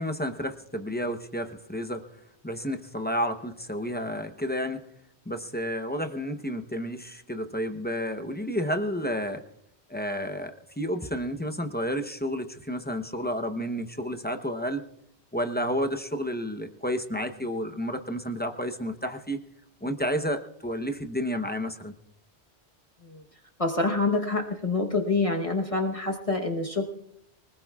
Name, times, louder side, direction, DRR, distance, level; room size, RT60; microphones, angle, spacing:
voice 1, 0.0-2.0 2.4-4.8 5.3-9.4 9.9-14.9 15.3-19.4 19.8-21.9, equal, 10° left, 6 dB, 0.7 m, -31 dB
voice 2, 23.6-26.8, left 3 dB, 30° left, 1 dB, 1.1 m, -26 dB
24.5 x 19.5 x 2.4 m, 0.75 s
omnidirectional pair, 1.1 m